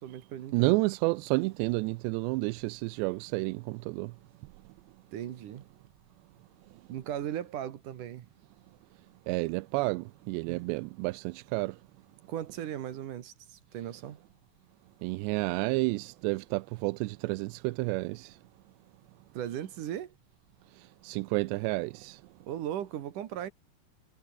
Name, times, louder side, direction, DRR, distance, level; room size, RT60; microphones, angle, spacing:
voice 1, 0.0-0.7 5.1-5.7 6.9-8.3 10.5-10.6 12.3-14.2 19.3-20.1 22.5-23.5, right 11 dB, 60° right, 2.5 m, -37 dB
voice 2, 0.5-4.1 9.3-11.8 15.0-18.4 21.0-22.2, right 24 dB, 85° right, 2.7 m, -30 dB
omnidirectional pair, 5.0 m